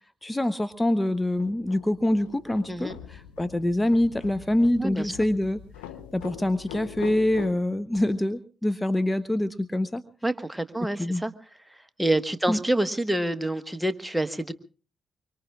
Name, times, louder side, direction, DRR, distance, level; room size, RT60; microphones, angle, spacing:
voice 1, 0.2-5.6 6.1-10.0 11.0-11.2 12.5-12.6, left 1 dB, 15° left, 14 dB, 0.9 m, -25 dB
sound 1, 1.0-7.5, left 10 dB, 85° left, 0.7 m, -43 dB
voice 2, 4.8-5.1 10.2-11.3 12.0-14.5, right 1 dB, 10° right, 11 dB, 1.4 m, -27 dB
24.5 x 24.0 x 2.4 m, 0.37 s
hypercardioid pair, 40°, 0 cm